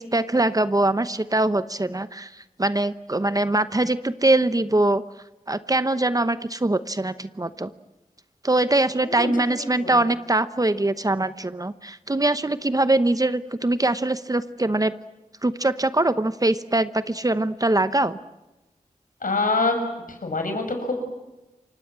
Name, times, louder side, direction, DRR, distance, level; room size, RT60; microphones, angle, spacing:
voice 1, 0.0-5.0 5.5-7.7 8.4-14.9 15.4-18.2, right 2 dB, 25° right, 12 dB, 0.9 m, -22 dB
voice 2, 19.2-19.8 20.2-20.9, left 3 dB, 75° left, 5 dB, 6.1 m, -24 dB
29.0 x 25.0 x 7.5 m, 1.0 s
wide cardioid pair, 80°, 14 cm